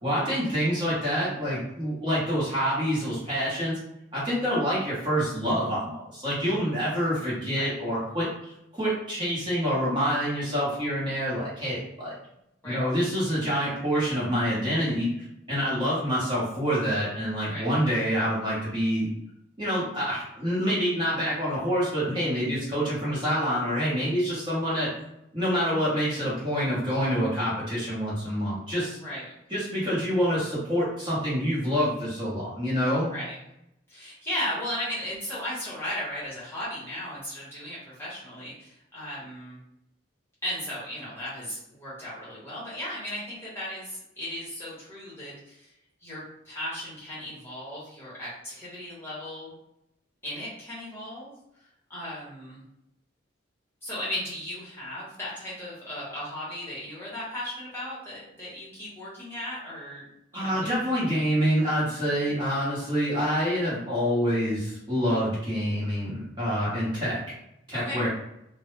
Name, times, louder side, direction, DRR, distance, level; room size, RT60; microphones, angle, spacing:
voice 1, 0.0-3.8 4.1-8.3 8.7-12.1 12.6-15.1 15.5-19.1 19.6-24.9 25.3-29.0 29.5-33.1 60.3-67.2 67.7-68.1, equal, 25° right, -8 dB, 0.9 m, -27 dB
voice 2, 28.8-29.3 33.1-33.3 33.9-39.6 40.4-45.7 46.0-49.5 50.2-51.3 51.9-52.6 53.8-60.0 60.3-60.7 67.7-68.0, left 1 dB, 10° left, -9 dB, 0.9 m, -36 dB
2.1 x 2.1 x 3.1 m, 0.82 s
head